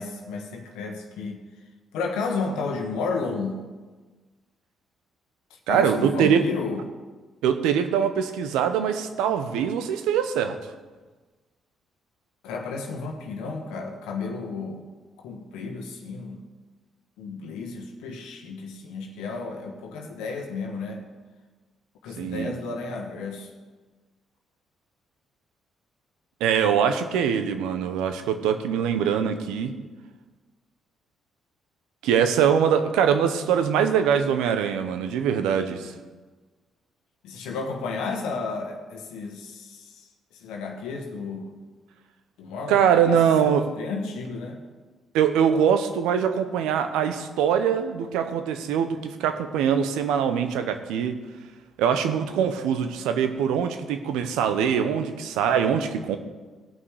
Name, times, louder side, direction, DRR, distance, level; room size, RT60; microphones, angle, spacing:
voice 1, 0.0-1.4 1.9-3.6 5.5-6.8 12.4-14.9 15.2-16.4 17.2-21.1 22.0-23.5 37.2-41.5 42.4-44.6, left 4 dB, 85° left, 2 dB, 1.2 m, -32 dB
voice 2, 5.7-6.4 7.4-10.6 22.2-22.6 26.4-29.7 32.0-35.9 42.7-43.7 45.1-51.2 51.8-56.2, right 8 dB, 85° right, 9 dB, 0.8 m, -23 dB
16.5 x 5.8 x 4.8 m, 1.3 s
supercardioid pair, 65°, 0 cm